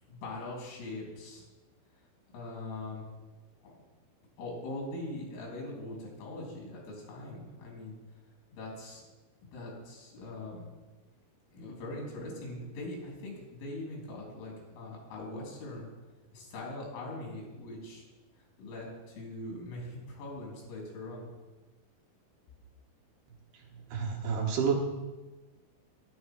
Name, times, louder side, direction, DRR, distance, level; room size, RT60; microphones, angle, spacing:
voice 1, 0.1-1.4 1.9-2.0 2.3-3.0 3.6-3.7 4.4-8.0 8.5-9.0 9.4-10.7 11.5-15.9 16.3-18.1 18.6-21.3, left 2 dB, 90° left, -2 dB, 5.8 m, -41 dB
voice 2, 23.9-24.7, right 6 dB, 70° right, -1 dB, 2.9 m, -29 dB
12.0 x 11.0 x 4.7 m, 1.2 s
omnidirectional pair, 5.5 m